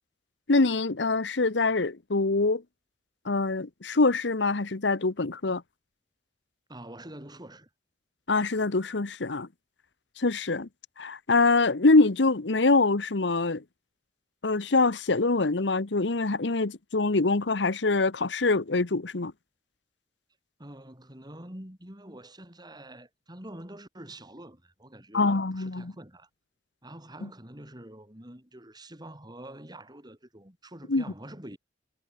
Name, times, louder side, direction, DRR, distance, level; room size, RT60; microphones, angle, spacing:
voice 1, 0.5-2.6 3.2-5.6 8.3-9.5 10.2-10.7 11.0-13.6 14.4-19.3 25.1-25.9 27.2-27.3 30.9-31.0, left 3 dB, 75° left, 1.1 m, -24 dB
voice 2, 6.7-7.7 20.6-26.3 26.8-31.6, right 1 dB, 25° right, 6.6 m, -46 dB
head